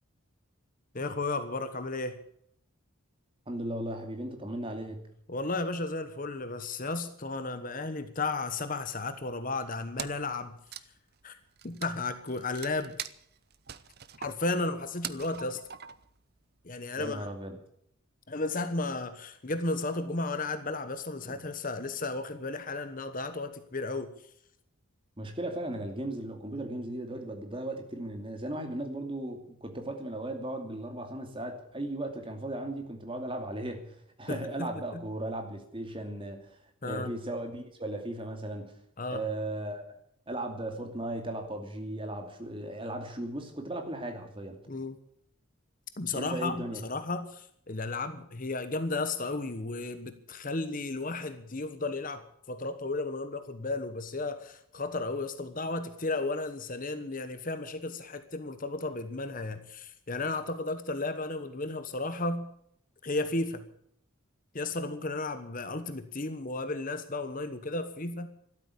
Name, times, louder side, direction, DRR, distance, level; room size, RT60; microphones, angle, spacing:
voice 1, 0.9-2.2 5.3-10.6 11.2-11.4 11.6-13.0 14.2-15.6 16.6-17.3 18.3-24.1 34.3-35.0 36.8-37.1 39.0-39.3 44.7-45.0 46.0-62.5 63.0-63.6 64.5-68.3, left 3 dB, 40° left, 10 dB, 1.2 m, -34 dB
voice 2, 3.5-5.0 17.0-17.5 21.2-21.3 25.2-38.7 39.1-39.8 40.3-44.6 46.1-46.8, right 1 dB, 25° right, 4 dB, 2.6 m, -36 dB
Wood, 10.0-10.3 10.6-16.2, right 9 dB, 45° right, 0.8 m, -42 dB
13.5 x 12.5 x 8.4 m, 0.69 s
head